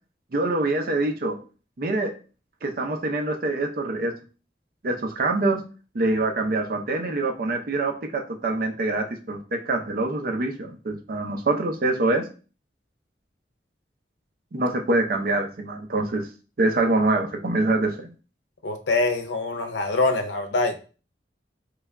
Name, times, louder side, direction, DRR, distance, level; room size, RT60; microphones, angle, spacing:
voice 1, 0.3-1.4 1.8-2.1 2.6-4.1 4.8-5.6 5.9-12.2 14.5-16.3 16.6-18.1, right 2 dB, 55° right, 4 dB, 0.5 m, -25 dB
voice 2, 18.6-20.9, left 2 dB, 90° left, 7 dB, 0.6 m, -24 dB
3.2 x 2.3 x 3.4 m, 0.36 s
head